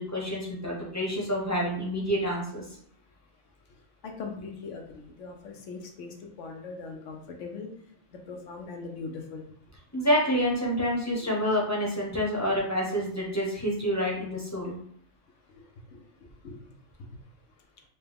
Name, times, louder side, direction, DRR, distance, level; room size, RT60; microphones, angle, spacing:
voice 1, 0.0-2.8 9.9-14.8, equal, 15° left, -4 dB, 0.8 m, -28 dB
voice 2, 3.7-7.7 8.1-9.5 11.2-11.3 15.5-17.2 17.6-17.7, left 4 dB, 80° left, 3 dB, 1.1 m, -41 dB
4.5 x 2.2 x 3.4 m, 0.65 s
omnidirectional pair, 1.2 m